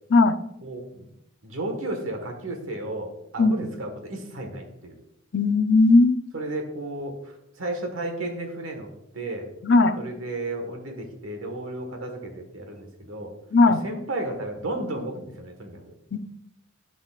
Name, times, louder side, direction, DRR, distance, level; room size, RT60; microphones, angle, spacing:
voice 1, 0.6-1.1 1.4-5.0 6.3-8.9 9.1-9.5 10.0-13.3 13.6-15.9, right 2 dB, 85° right, 3 dB, 1.5 m, -33 dB
voice 2, 5.3-6.2 9.6-10.0 13.5-13.8 16.1-16.2, left 3 dB, 55° left, 9 dB, 0.5 m, -17 dB
14.0 x 5.3 x 2.4 m, 0.83 s
head